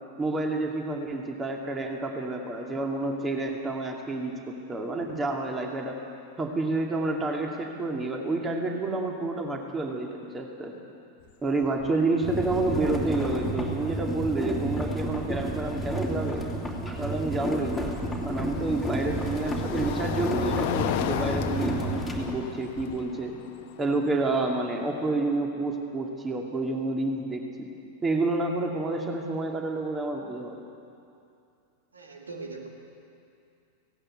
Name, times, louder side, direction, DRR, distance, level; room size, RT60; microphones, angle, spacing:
voice 1, 0.2-6.0 6.4-10.7 11.4-16.4 17.0-17.9 18.2-23.3 23.8-27.7 28.0-30.6, right 2 dB, 15° right, 1 dB, 2.4 m, -29 dB
sound 1, 11.2-11.3 11.6-12.0 13.9-14.0 17.0-25.1, left 10 dB, 50° left, 1.1 m, -35 dB
sound 2, 12.2-22.3, right 1 dB, 5° left, 2.9 m, -31 dB
voice 2, 31.9-32.7, right 3 dB, 75° right, 1 dB, 2.4 m, -41 dB
17.0 x 17.0 x 9.0 m, 2.5 s
figure-of-eight pair, 90°, 0 cm